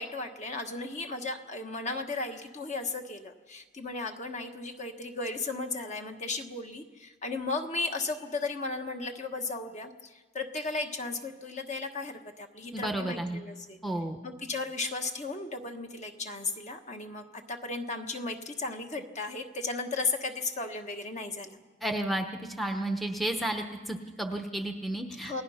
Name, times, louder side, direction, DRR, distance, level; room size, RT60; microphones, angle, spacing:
voice 1, 0.0-13.8 14.2-21.6 25.2-25.4, left 3 dB, 35° left, 5 dB, 1.4 m, -35 dB
voice 2, 12.7-13.4 13.8-14.2 21.8-25.4, right 1 dB, ahead, 4 dB, 0.9 m, -32 dB
28.0 x 19.0 x 5.7 m, 1.3 s
head